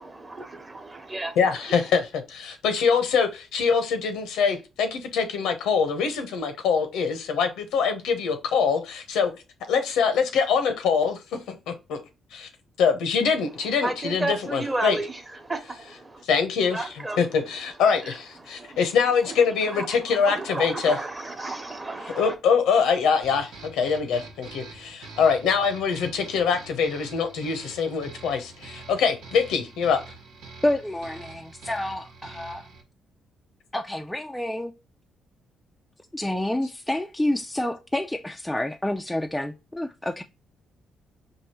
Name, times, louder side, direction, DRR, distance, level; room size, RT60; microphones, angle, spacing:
voice 1, 0.0-1.9 13.2-16.2 16.7-22.4, right 2 dB, 25° right, 1.0 m, -34 dB
voice 2, 1.4-2.0 2.3-9.3 9.7-11.4 11.7-12.0 12.3-12.5 12.8-14.2 14.5-15.0 16.3-16.8 17.2-20.9 22.2-30.0, left 6 dB, 90° left, 0.8 m, -24 dB
sound 1, 23.2-32.8, right 3 dB, 90° right, 1.2 m, -45 dB
voice 3, 30.6-32.7 33.7-34.7 36.1-40.2, left 1 dB, 10° left, 0.3 m, -28 dB
4.7 x 2.6 x 2.9 m
cardioid pair, 90°, 0 cm